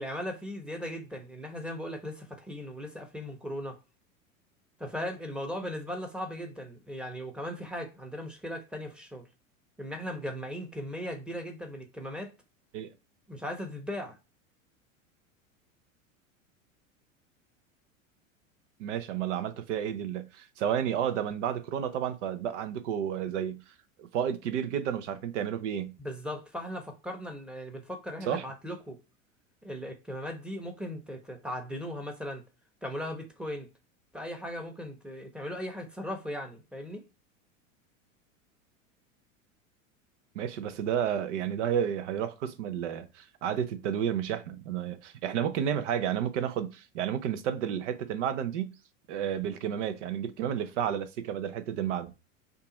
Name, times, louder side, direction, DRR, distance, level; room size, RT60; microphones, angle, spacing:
voice 1, 0.0-3.8 4.8-9.3 9.8-12.3 13.3-14.2 26.0-29.0 29.6-32.4 32.8-33.7 34.1-37.0, equal, ahead, 1.0 m, -38 dB
voice 2, 18.8-23.6 24.0-25.9 28.3-28.5 40.3-48.7 49.1-52.1, right 9 dB, 65° right, 0.7 m, -31 dB
5.4 x 2.5 x 3.9 m
hypercardioid pair, 90°, 39 cm